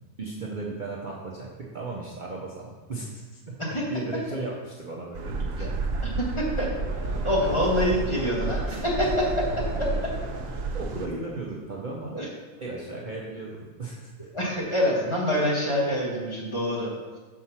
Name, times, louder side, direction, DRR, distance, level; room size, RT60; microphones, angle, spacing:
voice 1, 0.2-1.5 1.7-3.6 3.9-5.7 10.7-12.2 12.6-14.3, right 3 dB, 40° right, -3 dB, 0.8 m, -35 dB
sound 1, 5.1-11.1, right 3 dB, 75° right, 1.1 m, -31 dB
voice 2, 6.2-6.7 7.2-9.5 9.8-10.1 12.1-12.3 14.3-16.9, equal, 20° left, -4 dB, 1.6 m, -26 dB
Conversation / Crowd, 6.4-11.7, right 1 dB, 15° right, 1.5 m, -41 dB
6.1 x 4.8 x 5.7 m, 1.3 s
omnidirectional pair, 1.4 m